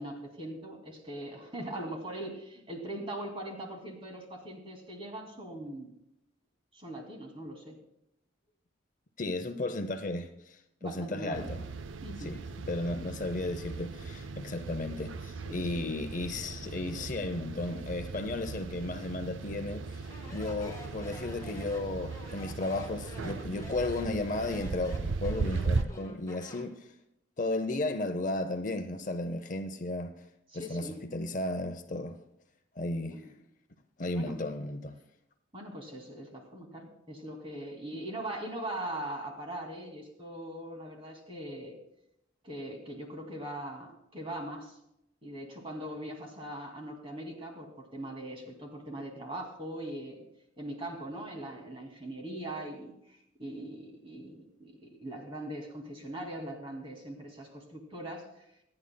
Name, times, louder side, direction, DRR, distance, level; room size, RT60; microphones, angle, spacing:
voice 1, 0.0-5.9 6.7-7.8 10.8-11.5 12.0-12.3 15.4-15.9 30.5-31.0 33.1-33.3 34.1-34.3 35.5-41.8 42.4-44.8 45.2-50.2 50.6-58.5, right 1 dB, 30° right, 2.4 m, -41 dB
voice 2, 9.2-10.6 10.8-11.6 12.2-12.4 12.7-26.9 27.4-30.1 30.5-32.2 32.8-33.3 34.0-35.0, left 2 dB, 40° left, 0.7 m, -34 dB
sound 1, 11.3-25.8, right 4 dB, 80° right, 0.5 m, -37 dB
Speech, 20.0-26.8, left 1 dB, 15° left, 3.3 m, -48 dB
26.0 x 9.8 x 2.2 m
head